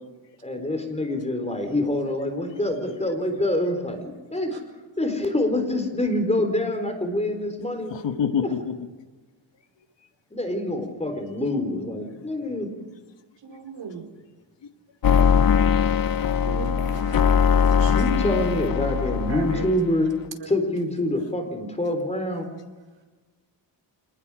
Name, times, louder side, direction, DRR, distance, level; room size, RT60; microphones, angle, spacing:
voice 1, 0.4-4.5 5.0-7.9 8.4-8.5 10.3-12.7 17.9-20.1 20.5-22.5, left 1 dB, 15° left, 5 dB, 4.1 m, -26 dB
voice 2, 7.9-8.8 13.5-13.6 17.6-17.7, left 7 dB, 70° left, 8 dB, 1.5 m, -27 dB
voice 3, 13.4-14.0 16.4-17.4 17.8-18.2 19.3-19.7, right 5 dB, 70° right, 2 dB, 4.9 m, -37 dB
sound 1, 15.0-19.9, left 7 dB, 50° left, 0.8 m, -21 dB
27.0 x 20.0 x 5.0 m, 1.3 s
wide cardioid pair, 125°, 45 cm